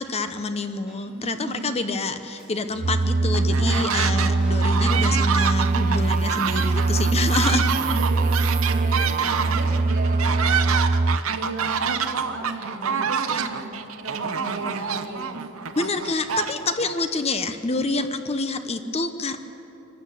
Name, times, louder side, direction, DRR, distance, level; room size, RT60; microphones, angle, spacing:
voice 1, 0.0-7.6 15.8-19.4, left 3 dB, 30° left, 9 dB, 0.9 m, -27 dB
Chink clink, 0.8-1.7 2.3-3.5 4.3-5.4 5.6-5.7 5.9-7.1 7.4-7.9, right 1 dB, 5° right, 5.0 m, -48 dB
voice 2, 1.1-1.7 3.6-4.7 6.9-10.8 11.3-13.7 14.0-15.7, right 2 dB, 65° right, -3 dB, 4.0 m, -35 dB
sound 1, 2.8-11.2, right 3 dB, 40° right, 0.4 m, -22 dB
sound 2, 3.3-4.3 4.6-16.9, right 7 dB, 85° right, 0.9 m, -27 dB
24.0 x 13.0 x 8.4 m, 3.0 s
head